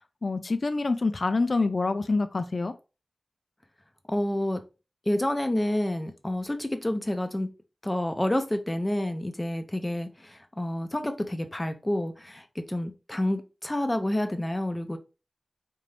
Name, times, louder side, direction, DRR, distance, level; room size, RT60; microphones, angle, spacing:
voice 1, 0.2-2.7, left 3 dB, 55° left, 0.4 m, -26 dB
voice 2, 4.1-4.6 5.1-7.5 7.8-15.0, left 1 dB, 20° left, 0.7 m, -29 dB
4.5 x 2.6 x 3.3 m
wide cardioid pair, 80°, 0 cm